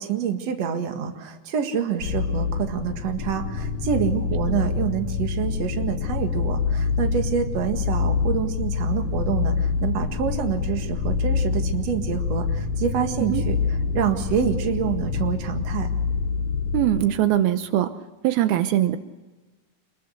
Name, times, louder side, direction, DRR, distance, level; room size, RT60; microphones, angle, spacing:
voice 1, 0.0-13.6 13.9-15.9, right 8 dB, 50° right, 5 dB, 2.6 m, -27 dB
sound 1, 2.0-17.0, left 5 dB, 65° left, 4.0 m, -26 dB
voice 2, 16.7-17.9 18.2-19.0, right 12 dB, 80° right, 10 dB, 2.7 m, -21 dB
27.0 x 21.5 x 6.6 m, 1.2 s
omnidirectional pair, 4.4 m